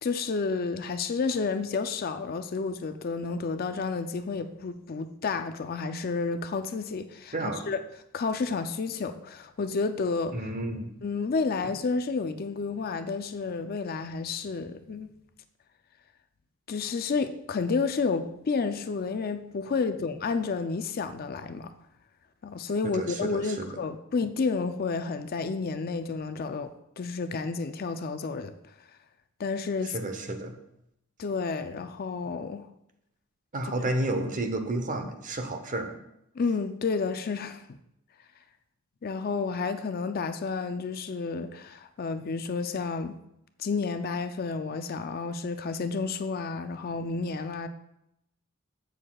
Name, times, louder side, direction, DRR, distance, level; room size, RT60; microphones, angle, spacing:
voice 1, 0.0-7.8 8.1-10.4 11.0-15.1 16.7-21.7 22.4-28.5 29.4-30.0 31.2-32.7 33.6-33.7 36.4-37.6 39.0-43.2 43.6-47.7, left 4 dB, 45° left, 0.4 m, -30 dB
voice 2, 7.3-7.7 10.3-10.9 22.8-23.7 29.8-30.6 33.5-36.0, right 1 dB, 35° right, 0.8 m, -31 dB
15.0 x 6.4 x 2.3 m
head